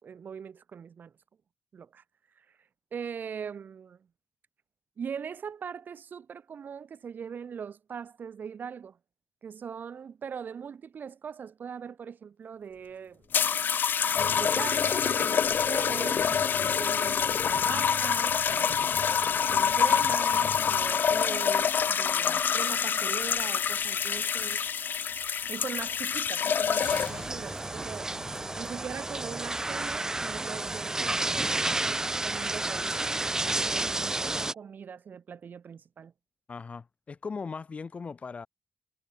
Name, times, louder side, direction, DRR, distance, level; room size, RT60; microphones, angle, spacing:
voice 1, 0.0-1.1 1.7-2.0 2.4-2.5 2.9-4.0 5.0-9.0 9.4-13.3 14.2-19.0 19.5-24.7 25.5-28.1 28.6-31.6 32.2-33.2 33.6-36.1, right 7 dB, 50° right, 3.4 m, -41 dB
sound 1, 13.3-27.3 28.2-28.5, left 7 dB, 50° left, 2.2 m, -26 dB
sound 2, 26.8-34.5, right 2 dB, 15° right, 1.4 m, -31 dB
voice 2, 36.5-38.5, left 5 dB, 30° left, 5.5 m, -38 dB
wide cardioid pair, 170°, 4 cm